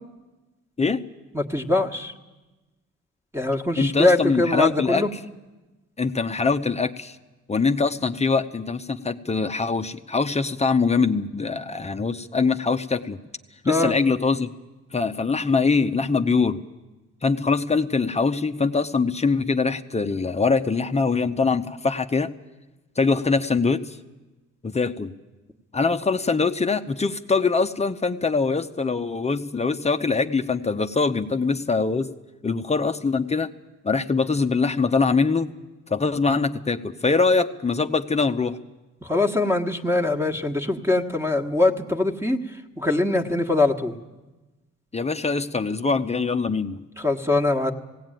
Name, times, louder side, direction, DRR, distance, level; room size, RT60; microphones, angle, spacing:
voice 1, 1.3-2.1 3.3-5.1 13.6-14.0 39.0-42.4 42.8-43.9 47.0-47.7, left 2 dB, 10° right, 4 dB, 1.5 m, -22 dB
voice 2, 3.8-5.0 6.0-7.2 7.5-13.2 13.6-14.5 14.9-16.7 17.2-22.3 23.0-24.0 24.6-25.1 25.7-32.1 32.4-33.5 33.8-35.5 35.9-38.6 44.9-46.8, left 4 dB, 20° left, 7 dB, 0.8 m, -23 dB
19.0 x 17.0 x 9.1 m, 1.1 s
cardioid pair, 90°, 30 cm